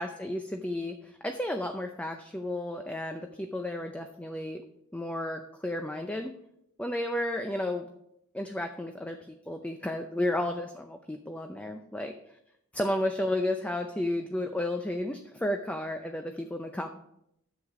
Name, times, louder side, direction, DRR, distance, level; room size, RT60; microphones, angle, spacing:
voice 1, 0.0-4.6 4.9-6.4 6.8-7.9 8.3-9.2 9.5-12.1 12.7-16.9, left 1 dB, 5° left, 5 dB, 0.5 m, -32 dB
10.5 x 8.1 x 4.9 m, 0.78 s
head